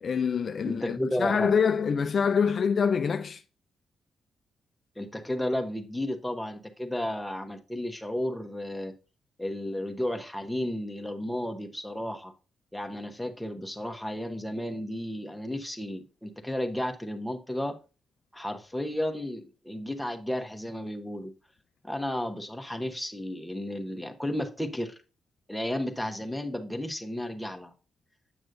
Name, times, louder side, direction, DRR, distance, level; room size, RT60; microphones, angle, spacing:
voice 1, 0.0-3.4, left 6 dB, 55° left, 0.4 m, -25 dB
voice 2, 0.6-1.5 5.0-8.9 9.4-12.3 12.7-17.8 18.3-21.3 21.8-24.9 25.5-27.7, left 1 dB, 5° left, 1.0 m, -33 dB
7.8 x 6.1 x 2.6 m
cardioid pair, 75°, 0 cm